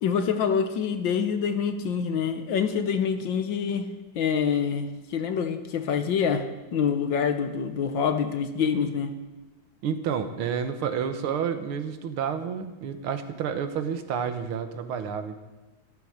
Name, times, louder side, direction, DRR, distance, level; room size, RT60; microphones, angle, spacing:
voice 1, 0.0-3.9 4.2-9.1, left 7 dB, 70° left, 8 dB, 1.7 m, -26 dB
voice 2, 9.8-15.4, right 7 dB, 85° right, 8 dB, 2.0 m, -30 dB
13.0 x 12.5 x 6.5 m, 1.1 s
omnidirectional pair, 2.3 m